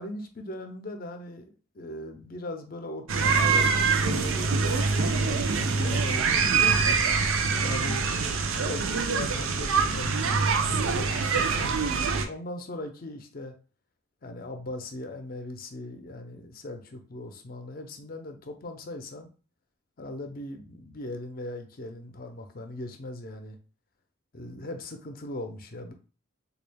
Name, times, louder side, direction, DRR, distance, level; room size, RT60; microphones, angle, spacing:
voice 1, 0.0-6.9 7.6-8.1 8.6-13.5 14.2-19.3 20.0-23.6 24.3-25.9, left 1 dB, 45° left, 6 dB, 0.5 m, -39 dB
sound 1, 3.1-12.3, right 5 dB, 75° right, 0.5 m, -24 dB
3.7 x 2.3 x 3.4 m, 0.36 s
head